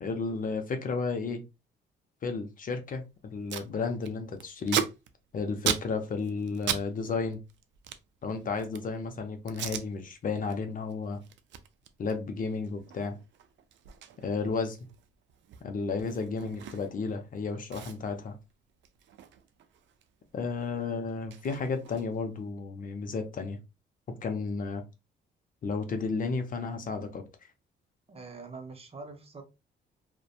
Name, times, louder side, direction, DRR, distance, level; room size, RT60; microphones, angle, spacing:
voice 1, 0.0-1.4 2.2-4.8 5.3-7.4 8.2-11.2 12.0-13.2 14.2-14.8 15.6-18.4 20.3-23.6 24.2-24.8 25.6-27.2, left 4 dB, 45° left, 0.5 m, -32 dB
Packing tape duct tape, 3.0-3.1 3.2-3.7 4.0-6.9 7.1-9.0 9.5-9.9 10.3-10.6 10.9-17.1 17.4-17.5 17.7-20.1 20.4-22.3, right 9 dB, 65° right, 0.4 m, -37 dB
voice 2, 28.1-29.4, right 4 dB, 30° right, 0.6 m, -44 dB
2.6 x 2.1 x 2.4 m
cardioid pair, 90°, 20 cm